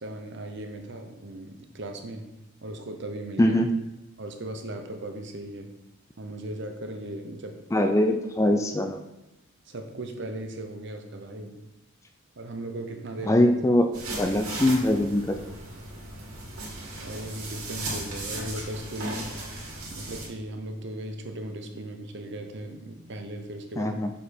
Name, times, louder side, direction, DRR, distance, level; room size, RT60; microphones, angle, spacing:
voice 1, 0.0-2.3 2.6-3.6 4.2-5.7 6.2-7.9 8.4-8.6 9.7-11.6 12.4-13.4 17.0-19.3 19.9-24.0, right 1 dB, 55° right, 5 dB, 0.8 m, -37 dB
voice 2, 7.7-9.0 13.3-13.9 14.2-15.4 23.8-24.1, left 1 dB, 15° left, 6 dB, 0.3 m, -22 dB
sound 1, 13.9-20.3, right 2 dB, 85° right, 2.3 m, -36 dB
7.0 x 5.1 x 4.3 m, 0.97 s
head